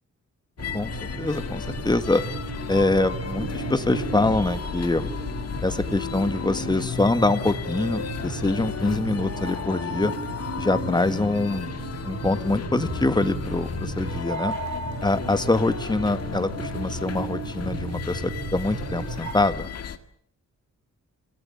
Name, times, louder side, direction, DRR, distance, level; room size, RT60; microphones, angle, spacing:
sound 1, 0.6-20.0, left 7 dB, 55° left, 1.9 m, -33 dB
sound 2, 0.6-19.3, right 5 dB, 65° right, 6.2 m, -35 dB
voice 1, 0.7-2.2 2.7-5.1 5.6-10.1 10.6-11.7 12.0-14.5 15.0-19.7, left 2 dB, 15° left, 11 dB, 1.6 m, -24 dB
28.0 x 18.0 x 9.2 m, 0.64 s
wide cardioid pair, 145°, 30 cm